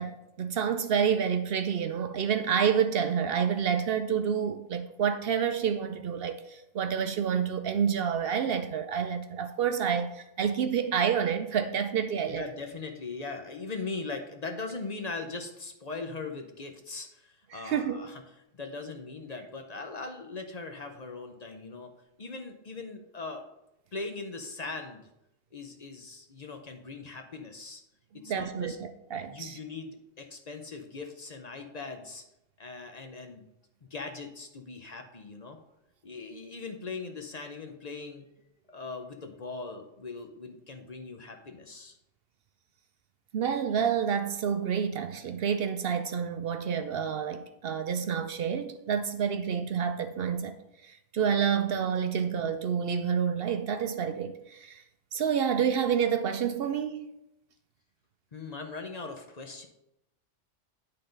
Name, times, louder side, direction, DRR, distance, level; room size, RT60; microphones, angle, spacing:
voice 1, 0.0-12.5 17.5-18.0 28.1-29.6 43.3-54.8 55.1-57.1, right 7 dB, 65° right, 0.7 m, -29 dB
voice 2, 12.3-18.2 18.5-21.9 22.2-23.4 23.9-25.0 25.5-27.8 28.2-28.8 29.3-32.2 32.6-33.5 33.8-35.6 36.0-38.3 38.7-42.0 58.3-59.7, left 3 dB, 40° left, 0.7 m, -40 dB
9.9 x 3.9 x 5.1 m
omnidirectional pair, 1.2 m